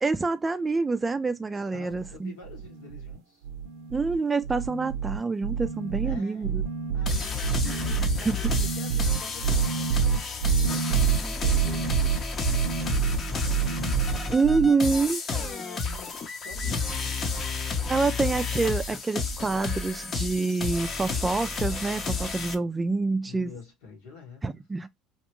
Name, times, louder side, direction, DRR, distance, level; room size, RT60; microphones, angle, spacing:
voice 1, 0.0-2.3 3.9-6.6 7.7-8.4 14.3-15.2 17.9-23.5 24.4-24.9, right 4 dB, 20° right, 0.3 m, -27 dB
voice 2, 1.7-3.4 6.0-6.5 6.9-7.8 8.2-9.9 10.4-12.1 13.3-14.7 15.3-17.3 23.2-24.6, left 3 dB, 85° left, 1.3 m, -47 dB
sound 1, 1.9-2.2 2.4-3.2 3.4-4.2 4.4-14.7, right 7 dB, 80° right, 0.5 m, -27 dB
sound 2, 7.1-22.5, left 4 dB, 45° left, 0.7 m, -31 dB
2.8 x 2.2 x 2.9 m
supercardioid pair, 85°, 0 cm